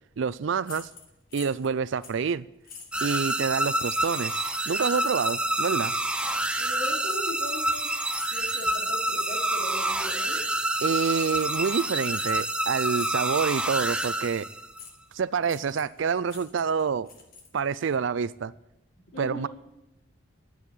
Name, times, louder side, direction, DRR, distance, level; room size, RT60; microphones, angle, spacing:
voice 1, 0.2-0.9 1.3-2.5 3.0-5.9 10.8-14.5 15.1-17.1 17.5-18.5 19.2-19.5, right 6 dB, 65° right, 16 dB, 0.4 m, -27 dB
sound 1, 0.6-1.7 2.0-2.2 2.6-3.5 3.9-4.3 5.2-5.5 6.1-6.3 7.0-7.8 8.1-8.4 9.1-9.5 10.0-10.2 10.8-11.1 11.5-11.6 12.1-12.3 12.9-13.3 13.6-14.3 14.8-14.9 15.4-16.0 16.2-17.8, left 5 dB, 45° left, 2.0 m, -46 dB
sound 2, 2.9-14.8, right 1 dB, 5° right, 0.5 m, -28 dB
voice 2, 6.5-8.0 8.3-10.5 19.1-19.5, equal, 70° left, -3 dB, 2.9 m, -39 dB
11.0 x 7.8 x 8.7 m, 0.90 s
head